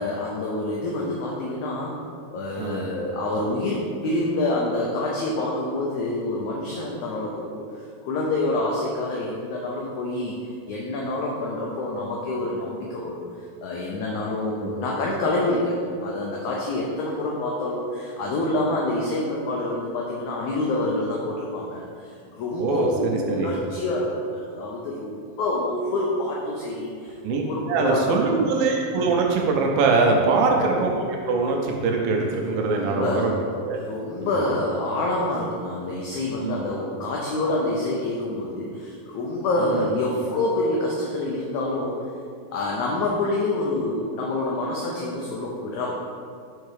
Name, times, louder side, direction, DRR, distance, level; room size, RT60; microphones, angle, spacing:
voice 1, 0.0-2.0 2.3-10.4 10.7-13.2 13.6-28.3 30.0-30.4 32.5-33.3 33.9-42.1 42.5-45.9, left 2 dB, 90° left, -3 dB, 1.6 m, -27 dB
voice 2, 22.6-23.5 27.2-27.4 27.7-33.3 33.6-33.8 34.2-34.3 36.4-36.6 39.6-39.8, right 4 dB, 80° right, 0 dB, 2.2 m, -23 dB
5.5 x 4.7 x 4.8 m, 2.3 s
omnidirectional pair, 4.2 m